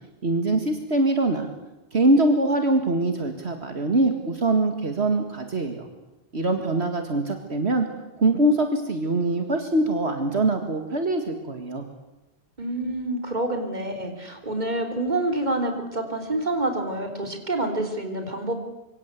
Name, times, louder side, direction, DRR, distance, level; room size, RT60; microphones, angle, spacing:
voice 1, 0.2-1.5 1.9-5.9 6.3-7.9 8.2-11.8, right 2 dB, 70° right, 5 dB, 2.2 m, -23 dB
voice 2, 12.6-18.5, right 1 dB, 40° right, 4 dB, 3.8 m, -27 dB
26.0 x 24.0 x 8.3 m, 1.0 s
omnidirectional pair, 1.1 m